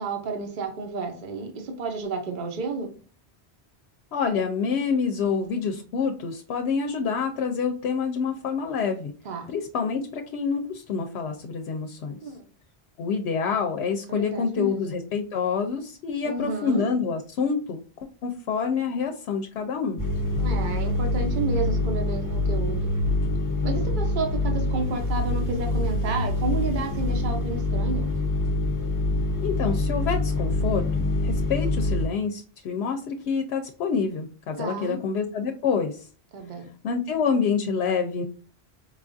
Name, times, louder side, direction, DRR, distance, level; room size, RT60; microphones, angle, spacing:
voice 1, 0.0-2.9 9.2-9.5 12.2-12.5 14.1-14.9 16.2-16.9 20.3-22.9 23.6-28.1 34.6-35.0 36.3-36.7, right 3 dB, 50° right, 3 dB, 0.9 m, -31 dB
voice 2, 4.1-9.1 9.5-12.2 13.0-17.8 18.2-20.0 29.4-36.1 36.8-38.2, left 6 dB, 85° left, 4 dB, 0.8 m, -27 dB
sound 1, 20.0-32.0, left 2 dB, 20° left, 1.0 m, -25 dB
4.8 x 2.3 x 2.5 m, 0.39 s
omnidirectional pair, 1.1 m